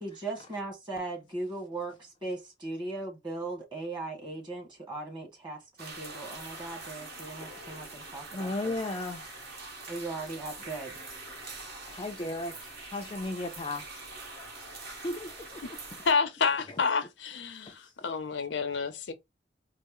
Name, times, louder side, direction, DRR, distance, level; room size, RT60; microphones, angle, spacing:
voice 1, 0.0-8.7 9.9-11.0, right 2 dB, 25° right, 1.7 m, -38 dB
sound 1, 5.8-16.1, right 2 dB, 60° right, 1.5 m, -44 dB
voice 2, 8.3-9.3 11.9-14.0 15.0-16.0 16.7-16.8 17.6-17.9 18.5-18.6, left 2 dB, 25° left, 0.4 m, -36 dB
voice 3, 16.1-19.1, left 5 dB, 70° left, 0.6 m, -29 dB
4.1 x 2.0 x 3.5 m
head